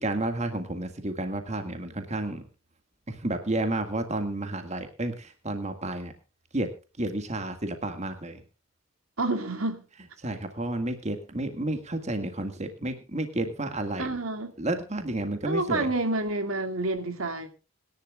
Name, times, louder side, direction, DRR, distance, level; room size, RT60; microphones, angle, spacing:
voice 1, 0.0-2.4 3.1-6.1 6.5-6.7 7.0-8.4 10.2-14.2 14.6-15.9, right 2 dB, 30° right, 1.9 m, -31 dB
voice 2, 9.2-9.8 14.0-14.5 15.5-17.5, right 2 dB, 75° right, 2.5 m, -28 dB
26.5 x 11.0 x 2.4 m
head